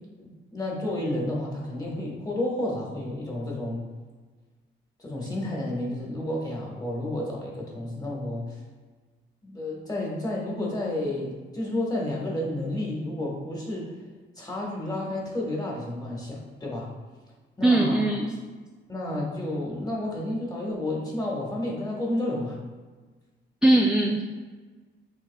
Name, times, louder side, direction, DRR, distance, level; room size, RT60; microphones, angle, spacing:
voice 1, 0.2-3.8 5.0-8.6 9.4-13.9 14.4-16.9 17.6-18.1 18.9-22.6, left 1 dB, 20° left, -3 dB, 1.5 m, -31 dB
voice 2, 17.6-18.4 23.6-24.2, right 1 dB, 5° right, 1 dB, 0.3 m, -20 dB
6.4 x 3.3 x 2.3 m, 1.4 s
cardioid pair, 90°, 20 cm